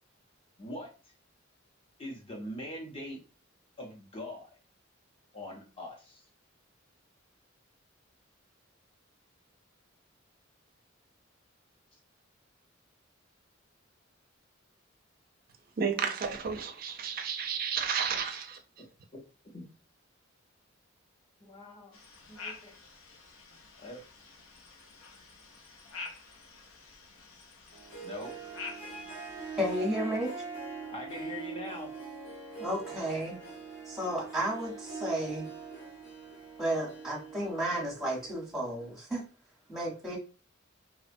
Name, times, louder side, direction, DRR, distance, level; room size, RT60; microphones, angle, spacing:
voice 1, 0.6-1.1 2.0-3.2 3.8-4.5 5.3-6.2 18.8-19.6 21.4-22.0 22.3-22.7 23.8-24.1 28.0-28.4 29.7-30.0 30.9-31.9, left 1 dB, 30° left, 0.7 m, -43 dB
voice 2, 15.8-18.6, right 6 dB, 45° right, 0.4 m, -32 dB
sound 1, 21.9-29.9, left 4 dB, 90° left, 0.5 m, -48 dB
Harp, 27.7-38.9, right 5 dB, 65° left, 1.2 m, -43 dB
voice 3, 29.6-30.3 32.6-33.4 33.8-35.5 36.6-39.2 39.7-40.2, equal, ahead, 0.8 m, -32 dB
2.8 x 2.1 x 2.6 m
head